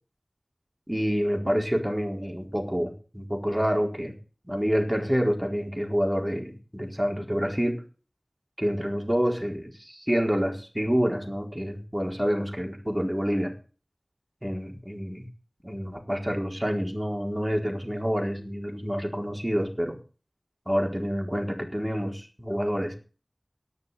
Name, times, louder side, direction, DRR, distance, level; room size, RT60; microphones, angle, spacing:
voice 1, 0.9-4.1 4.5-7.8 8.6-13.5 14.4-15.3 15.6-20.0 20.7-22.9, equal, 15° right, 2 dB, 4.3 m, -28 dB
19.0 x 6.6 x 7.0 m, 0.36 s
wide cardioid pair, 40°, 0 cm